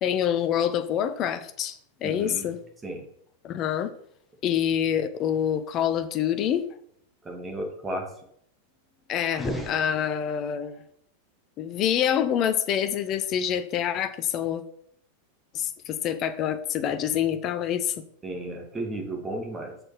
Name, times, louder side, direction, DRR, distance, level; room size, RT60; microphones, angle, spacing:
voice 1, 0.0-2.6 3.4-3.9 4.4-6.7 9.1-10.8 11.6-14.6 15.5-17.9, left 9 dB, 35° left, 11 dB, 0.8 m, -26 dB
voice 2, 2.0-2.5 2.8-3.0 7.2-8.1 18.2-19.7, right 1 dB, 15° right, 2 dB, 2.4 m, -33 dB
sound 1, 9.3-10.6, left 1 dB, 5° left, 1.9 m, -35 dB
6.8 x 6.5 x 6.0 m, 0.68 s
figure-of-eight pair, 90°, 0 cm